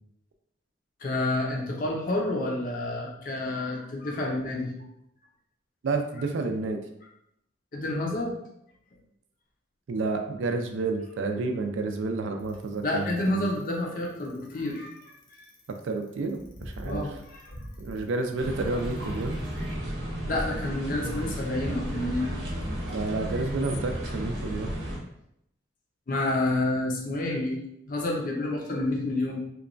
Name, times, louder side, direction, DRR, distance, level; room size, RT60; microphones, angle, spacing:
voice 1, 1.0-4.7 7.7-8.4 12.8-14.9 15.3-15.4 16.8-17.6 20.3-22.3 22.8-22.9 26.1-27.6 27.9-29.4, left 2 dB, 45° left, -1 dB, 0.5 m, -29 dB
voice 2, 5.8-6.8 9.9-13.6 15.8-17.1 17.8-19.4 22.9-24.7, right 3 dB, 80° right, 5 dB, 0.4 m, -30 dB
Bicycle, 12.4-20.5, equal, 85° left, 0.7 m, -45 dB
sound 1, 18.4-25.0, equal, 60° right, 0.7 m, -33 dB
2.9 x 2.2 x 2.5 m, 0.77 s
head